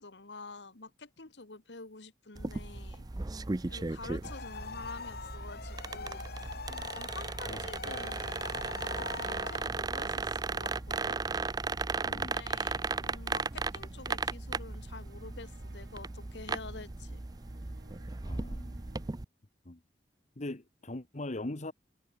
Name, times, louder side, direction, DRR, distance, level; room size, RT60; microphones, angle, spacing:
voice 1, 0.0-3.1 3.7-6.4 6.9-11.2 12.1-17.2, left 3 dB, 75° left, 1.8 m, -48 dB
sound 1, 2.4-19.2, right 3 dB, 25° right, 0.5 m, -36 dB
sound 2, 2.6-19.1, right 1 dB, 85° right, 5.0 m, -62 dB
sound 3, 4.2-9.6, left 5 dB, 60° left, 1.1 m, -44 dB
voice 2, 12.0-12.4 18.3-18.8 19.6-19.8 20.4-21.7, left 2 dB, 40° left, 1.4 m, -41 dB
head